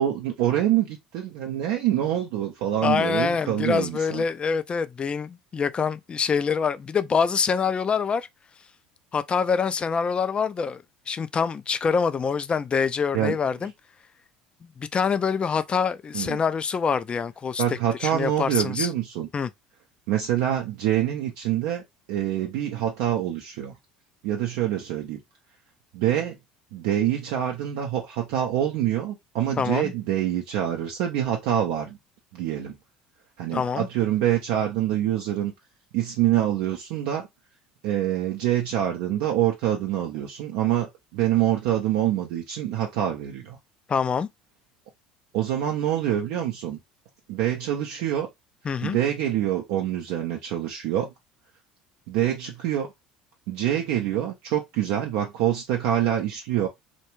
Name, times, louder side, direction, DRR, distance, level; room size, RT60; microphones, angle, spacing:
voice 1, 0.0-4.2 13.1-13.4 16.1-16.4 17.6-19.3 20.1-23.7 24.2-25.2 25.9-26.4 26.7-32.0 32.3-32.7 33.4-35.5 35.9-37.3 37.8-43.6 45.3-46.8 47.3-48.3 48.8-51.1 52.1-52.9 53.5-56.7, right 11 dB, 65° right, 0.5 m, -25 dB
voice 2, 2.8-8.3 9.1-13.7 14.8-18.9 19.3-19.5 29.6-29.9 33.5-33.9 43.9-44.3 48.7-49.0, left 6 dB, 30° left, 0.3 m, -25 dB
2.3 x 2.2 x 3.0 m
hypercardioid pair, 70°, 4 cm